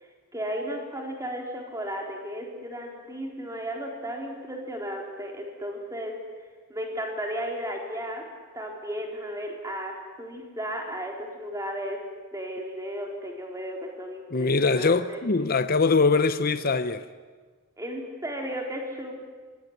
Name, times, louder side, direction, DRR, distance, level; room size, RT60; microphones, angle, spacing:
voice 1, 0.3-6.1 6.7-8.2 8.5-12.0 12.3-15.2 17.8-19.1, equal, 15° right, 4.3 m, -34 dB
voice 2, 14.3-17.0, left 4 dB, 45° left, 0.8 m, -22 dB
25.0 x 20.5 x 9.8 m
head